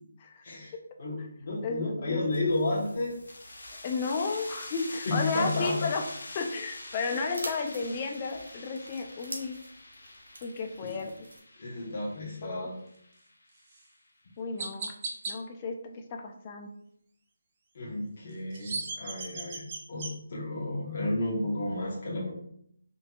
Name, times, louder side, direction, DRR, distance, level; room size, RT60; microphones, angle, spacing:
voice 1, 1.0-3.1 5.0-5.9 10.8-11.1 11.6-12.8 17.7-22.3, left 2 dB, 45° left, -4 dB, 0.9 m, -32 dB
voice 2, 1.6-2.2 3.8-6.0 6.3-9.6 10.4-11.1 12.4-12.7 14.4-14.9 15.3-15.8 16.1-16.7, left 4 dB, 30° left, 4 dB, 0.4 m, -33 dB
sound 1, 2.3-11.4, right 1 dB, 90° right, 0.8 m, -48 dB
sound 2, 2.5-13.9, left 2 dB, 75° left, 0.7 m, -45 dB
Chirp tweet, 13.7-13.8 14.6-15.3 18.3-20.1, right 3 dB, 35° right, 0.5 m, -36 dB
3.8 x 2.8 x 2.3 m, 0.69 s
figure-of-eight pair, 160°, 0 cm